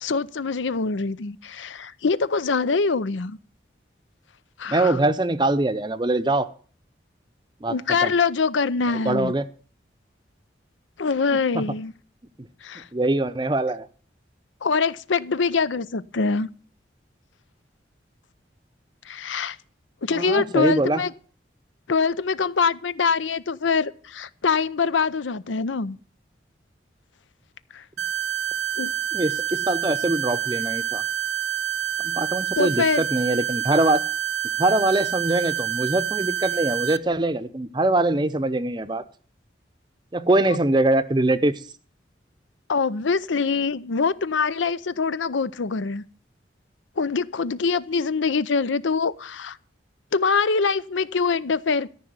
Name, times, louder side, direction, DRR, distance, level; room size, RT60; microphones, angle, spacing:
voice 1, 0.0-3.4 4.6-5.0 7.7-9.3 11.0-11.9 12.6-12.9 14.6-16.5 19.1-19.6 20.0-21.1 21.9-26.0 27.7-27.8 28.8-28.9 32.6-33.0 40.5-40.6 42.7-46.0 47.0-49.6 50.1-51.9, left 5 dB, 90° left, 0.6 m, -24 dB
voice 2, 4.7-6.5 7.6-7.8 8.0-8.1 8.9-9.4 11.5-11.6 12.9-13.9 20.1-21.0 29.1-31.0 32.0-34.0 34.6-39.0 40.1-41.5, right 2 dB, 25° right, 0.6 m, -23 dB
sound 1, 28.0-37.0, right 10 dB, 75° right, 0.6 m, -27 dB
13.5 x 5.6 x 9.4 m
head